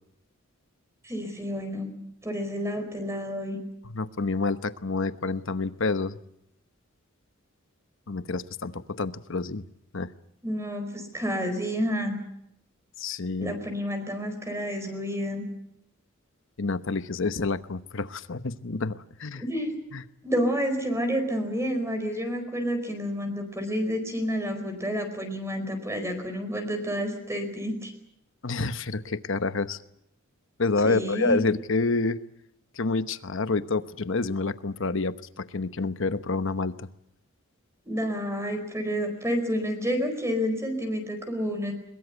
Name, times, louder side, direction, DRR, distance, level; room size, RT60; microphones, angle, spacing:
voice 1, 1.0-1.9 2.2-3.6 10.4-12.2 13.4-15.4 19.4-19.7 20.2-27.9 30.8-31.4 37.9-41.7, equal, 15° right, 6 dB, 4.7 m, -29 dB
voice 2, 3.8-6.2 8.1-9.6 9.9-10.1 13.0-13.5 16.6-19.4 19.9-20.0 28.4-29.8 30.6-32.2 32.8-36.9, left 3 dB, 65° left, 12 dB, 1.0 m, -28 dB
22.0 x 22.0 x 8.1 m, 0.79 s
head